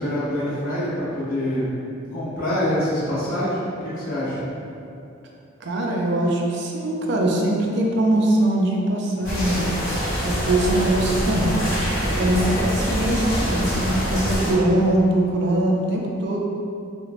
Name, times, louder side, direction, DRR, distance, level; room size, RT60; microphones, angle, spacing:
voice 1, 0.0-1.7 2.1-4.4, left 1 dB, 40° left, -10 dB, 0.6 m, -25 dB
voice 2, 5.6-9.6 10.2-16.4, right 1 dB, 55° right, -1 dB, 0.3 m, -22 dB
sound 1, 9.2-14.5, equal, 80° left, 1.0 m, -24 dB
3.0 x 2.1 x 2.4 m, 2.6 s
head